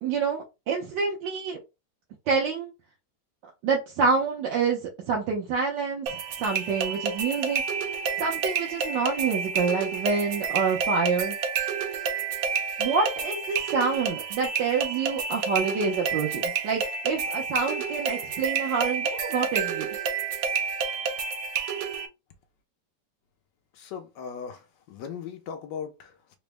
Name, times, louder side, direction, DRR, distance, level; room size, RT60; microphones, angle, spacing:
voice 1, 0.0-1.6 2.3-2.7 3.6-7.6 8.2-11.4 12.8-19.9, right 5 dB, 90° right, 1.4 m, -27 dB
sound 1, 6.1-22.1, right 6 dB, 65° right, 0.9 m, -30 dB
voice 2, 23.7-26.4, left 7 dB, 85° left, 1.3 m, -38 dB
3.9 x 2.0 x 3.3 m
omnidirectional pair, 1.9 m